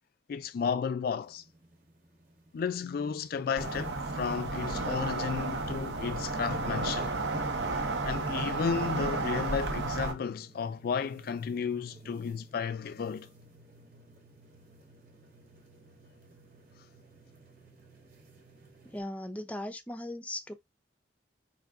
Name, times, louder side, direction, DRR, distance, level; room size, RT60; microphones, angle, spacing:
voice 1, 0.3-1.4 2.5-7.1 8.1-13.3, left 6 dB, 60° left, 0.3 m, -33 dB
sound 1, 1.2-19.0, right 2 dB, 55° right, 1.7 m, -57 dB
sound 2, 3.6-10.1, right 3 dB, 90° right, 1.0 m, -32 dB
voice 2, 18.8-20.5, left 1 dB, 10° left, 0.6 m, -38 dB
5.2 x 2.4 x 3.5 m
head